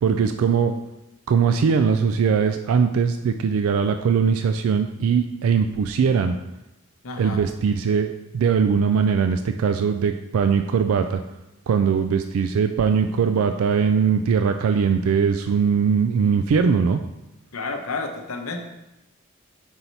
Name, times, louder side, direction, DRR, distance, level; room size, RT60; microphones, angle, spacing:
voice 1, 0.0-0.7 1.3-6.4 7.2-11.2 11.7-17.0, right 6 dB, 70° right, 8 dB, 0.3 m, -20 dB
voice 2, 7.0-7.4 17.5-18.6, left 3 dB, 75° left, 4 dB, 0.8 m, -30 dB
5.5 x 4.4 x 4.0 m, 0.95 s
head